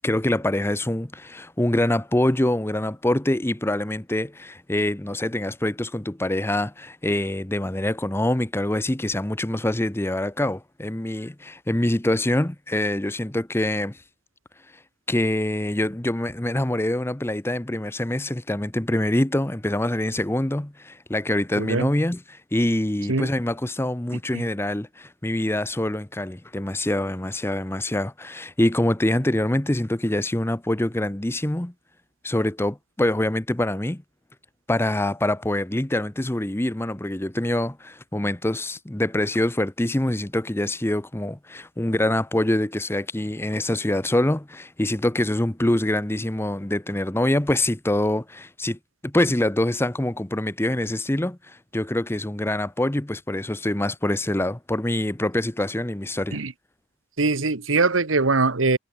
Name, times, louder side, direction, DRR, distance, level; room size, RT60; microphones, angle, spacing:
voice 1, 0.0-14.0 15.1-31.7 32.2-34.0 34.7-56.4, left 1 dB, 10° left, 0.8 m, -25 dB
voice 2, 21.6-21.9 23.1-23.3 56.3-56.5 57.2-58.8, right 3 dB, 85° right, 1.4 m, -22 dB
head